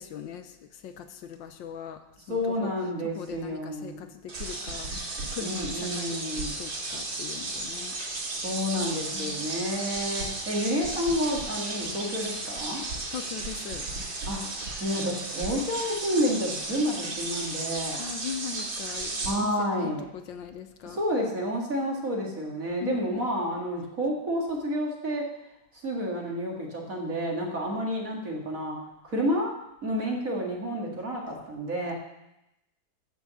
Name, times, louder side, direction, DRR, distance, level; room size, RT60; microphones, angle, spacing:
voice 1, 0.0-2.7 3.0-8.2 9.1-9.5 13.1-13.9 18.0-21.0 22.8-23.3, left 8 dB, 75° left, 8 dB, 1.5 m, -40 dB
voice 2, 2.3-4.0 5.4-6.5 8.4-12.8 14.3-14.4 14.8-18.0 19.2-20.0 20.8-25.3 25.8-29.6 29.8-31.9, equal, 45° right, -1 dB, 2.5 m, -30 dB
sound 1, 4.3-19.3, right 2 dB, 70° right, 3.1 m, -34 dB
14.5 x 6.3 x 6.9 m, 0.91 s
omnidirectional pair, 2.1 m